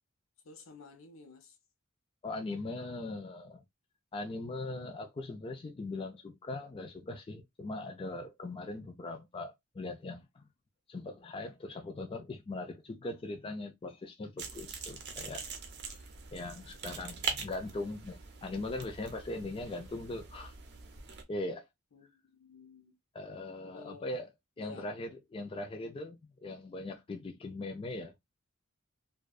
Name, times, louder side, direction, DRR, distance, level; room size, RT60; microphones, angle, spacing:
voice 1, 0.4-1.6 4.5-4.9 21.9-22.9 23.6-24.1 24.6-24.9, left 4 dB, 75° left, 0.6 m, -53 dB
voice 2, 2.2-3.6 4.1-10.5 10.9-15.5 15.9-16.0 16.3-20.5 21.3-21.6 23.1-24.3 24.6-28.1, left 2 dB, 25° left, 0.3 m, -40 dB
sound 1, 14.4-21.2, right 5 dB, 55° right, 0.6 m, -42 dB
2.5 x 2.2 x 2.2 m
head